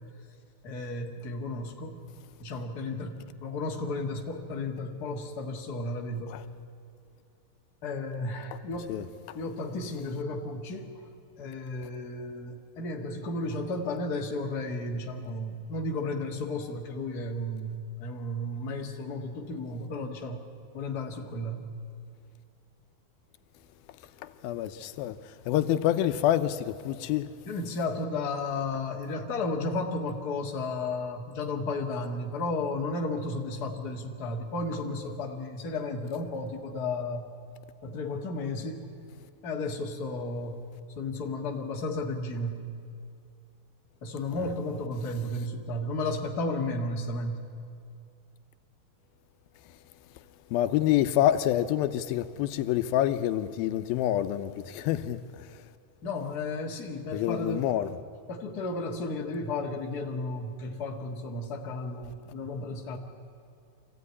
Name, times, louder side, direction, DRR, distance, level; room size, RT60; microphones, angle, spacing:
voice 1, 0.6-2.0 2.4-6.4 7.8-8.9 9.3-11.0 11.4-20.4 20.7-21.7 27.5-37.3 37.8-38.9 39.4-40.6 41.0-42.6 44.0-47.4 56.0-57.7 58.3-63.0, left 2 dB, 35° left, 1.8 m, -33 dB
voice 2, 24.4-25.2 25.5-27.3 44.4-44.5 50.5-55.2 57.1-58.0, left 12 dB, 85° left, 2.6 m, -27 dB
25.0 x 16.0 x 9.6 m
omnidirectional pair, 4.2 m